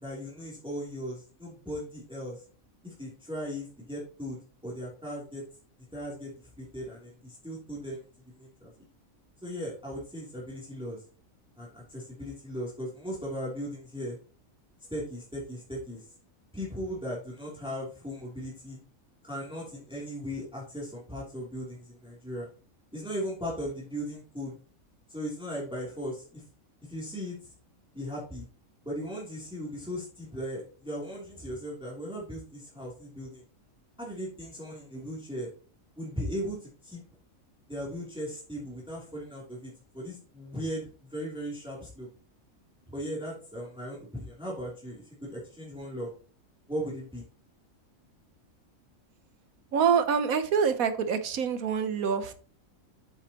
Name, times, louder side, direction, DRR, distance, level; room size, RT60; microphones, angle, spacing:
voice 1, 0.0-2.4 2.8-5.4 5.9-8.7 9.4-11.0 11.6-14.2 14.9-16.0 16.5-18.8 19.2-22.5 22.9-24.5 25.1-26.4 26.9-27.4 27.9-28.5 28.8-33.4 34.0-35.5 36.0-37.0 37.7-42.1 42.9-46.1 46.7-47.3, equal, 5° right, -5 dB, 2.9 m, -37 dB
voice 2, 49.7-52.3, right 6 dB, 80° right, 10 dB, 1.4 m, -26 dB
8.0 x 7.1 x 2.9 m, 0.39 s
omnidirectional pair, 1.5 m